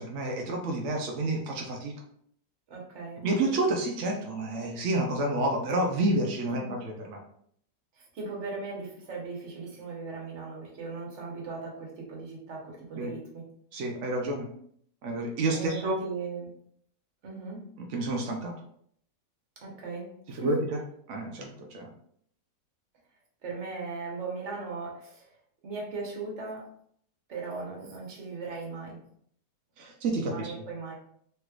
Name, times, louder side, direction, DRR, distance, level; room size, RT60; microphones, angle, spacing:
voice 1, 0.0-1.9 3.2-7.2 13.0-13.1 13.7-14.5 15.0-16.0 17.8-18.5 20.3-20.8 21.1-21.9 29.8-30.5, right 2 dB, 75° right, 1 dB, 0.6 m, -29 dB
voice 2, 2.7-3.3 6.5-6.8 8.0-13.5 15.5-16.5 17.2-17.7 19.6-20.5 23.4-25.3 25.6-26.7 27.3-29.0 30.2-30.9, right 4 dB, 50° right, -2 dB, 1.1 m, -38 dB
3.3 x 3.0 x 2.3 m, 0.65 s
omnidirectional pair, 1.8 m